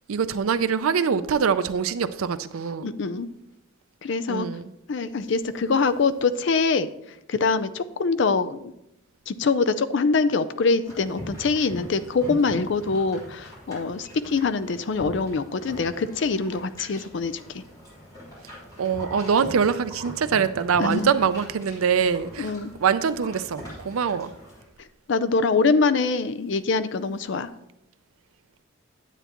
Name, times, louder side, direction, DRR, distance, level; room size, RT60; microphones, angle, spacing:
voice 1, 0.1-2.9 4.3-4.7 18.8-22.5 22.8-24.3, right 6 dB, 85° right, 13 dB, 0.5 m, -24 dB
voice 2, 2.8-3.3 4.0-4.5 4.9-6.9 7.3-8.6 9.3-17.6 20.8-21.1 22.4-22.7 25.1-27.5, left 4 dB, 60° left, 13 dB, 0.4 m, -24 dB
sound 1, 10.8-24.6, equal, 15° left, 3.5 m, -42 dB
9.9 x 8.1 x 3.0 m, 0.83 s
head